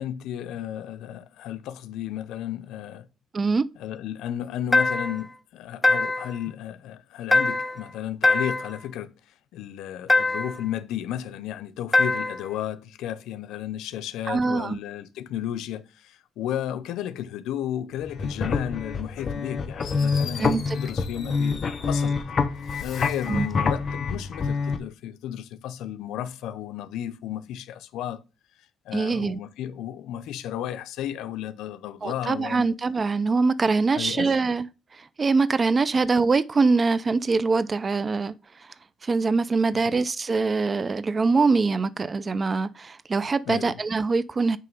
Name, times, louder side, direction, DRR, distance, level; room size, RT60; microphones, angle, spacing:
voice 1, 0.0-3.1 3.8-9.1 9.5-22.2 22.8-28.2 28.9-32.7 33.9-34.3 39.7-40.0 43.5-43.8, left 11 dB, 85° left, 0.7 m, -33 dB
voice 2, 3.3-3.7 14.3-14.8 20.4-20.8 23.3-23.5 28.9-29.4 32.0-34.7 34.9-38.7 39.0-44.6, right 4 dB, 30° right, 0.5 m, -23 dB
sound 1, 4.7-5.3 5.8-6.4 7.3-7.9 8.2-8.8 10.1-10.6 11.9-12.5, left 2 dB, 15° left, 0.5 m, -22 dB
sound 2, 18.0-24.8, left 5 dB, 40° left, 0.9 m, -27 dB
Fireworks, 19.4-19.5 19.8-22.2 22.6-23.4, left 6 dB, 65° left, 3.2 m, -43 dB
9.1 x 3.2 x 5.3 m
cardioid pair, 100°, 0 cm